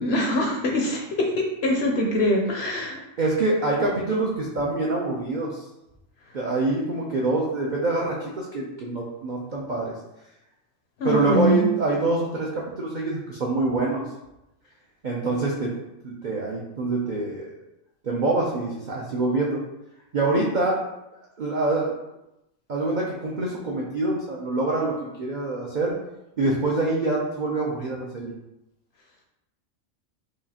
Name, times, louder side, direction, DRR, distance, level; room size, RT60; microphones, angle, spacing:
voice 1, 0.0-3.0 11.0-11.7, equal, 65° left, 1 dB, 0.7 m, -23 dB
voice 2, 3.2-5.6 6.3-9.9 11.0-14.0 15.0-15.7 16.0-17.6 18.0-19.6 20.1-20.8 21.4-21.9 22.7-25.9 26.4-28.3, right 2 dB, 65° right, -3 dB, 0.4 m, -25 dB
4.7 x 2.4 x 2.8 m, 0.90 s
omnidirectional pair, 1.4 m